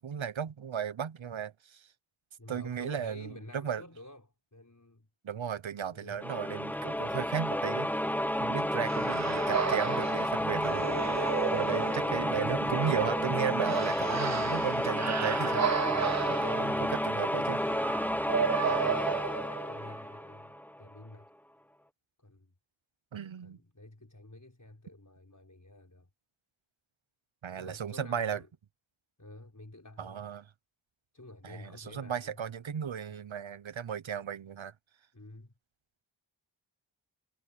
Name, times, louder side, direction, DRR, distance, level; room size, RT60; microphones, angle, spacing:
voice 1, 0.0-1.9 2.5-3.8 5.2-7.9 8.4-10.9 11.5-15.6 16.3-17.6 23.1-23.6 27.4-28.4 30.0-30.4 31.4-34.7, right 8 dB, 85° right, 0.8 m, -35 dB
voice 2, 2.4-5.1 5.9-6.2 15.9-21.3 22.2-22.5 23.4-26.1 27.5-28.5 29.2-30.3 31.1-32.4 35.1-35.5, left 2 dB, 40° left, 5.7 m, -50 dB
sound 1, 6.2-20.8, left 1 dB, 5° left, 0.6 m, -31 dB
sound 2, 8.9-19.9, right 8 dB, 40° right, 0.4 m, -34 dB
wide cardioid pair, 45°, 46 cm